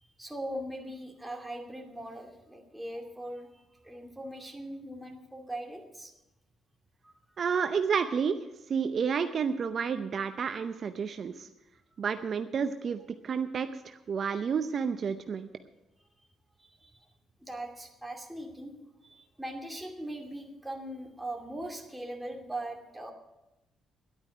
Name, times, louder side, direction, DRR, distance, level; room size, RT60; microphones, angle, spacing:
voice 1, 0.2-6.1 7.0-7.1 16.6-17.0 17.4-18.7 19.0-23.1, right 1 dB, 5° right, 2 dB, 2.4 m, -40 dB
voice 2, 7.4-8.4 8.7-11.5 12.0-15.5, right 6 dB, 50° right, 9 dB, 0.7 m, -30 dB
11.0 x 8.9 x 9.2 m, 0.95 s
cardioid pair, 90°, 0 cm